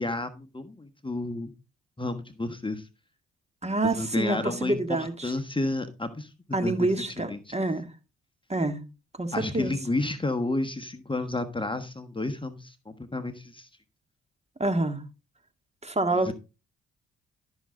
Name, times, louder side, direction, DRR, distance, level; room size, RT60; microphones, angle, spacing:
voice 1, 0.0-1.5 2.0-2.9 3.9-6.3 6.6-6.9 7.3-7.5 9.3-13.7 16.1-16.3, left 2 dB, 15° left, 1.3 m, -31 dB
voice 2, 3.6-5.3 6.5-7.9 8.5-8.8 9.2-9.7 14.6-15.0 15.8-16.3, right 2 dB, 20° right, 1.8 m, -27 dB
12.5 x 6.3 x 3.9 m
hypercardioid pair, 45°, 30 cm